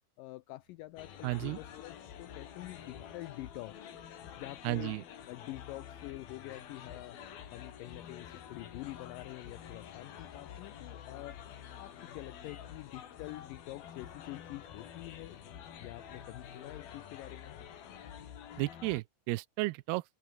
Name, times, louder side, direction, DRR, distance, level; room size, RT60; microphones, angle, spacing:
voice 1, 0.2-3.9 4.4-5.0 5.3-7.2 7.5-11.4 11.8-15.4 15.8-17.6, left 18 dB, 90° left, 1.9 m, -46 dB
sound 1, 0.6-18.5, right 4 dB, 50° right, 7.8 m, -72 dB
sound 2, 1.0-19.0, left 9 dB, 70° left, 4.2 m, -48 dB
voice 2, 1.2-1.6 4.6-5.0 18.6-20.0, right 21 dB, 85° right, 2.6 m, -33 dB
omnidirectional pair, 4.5 m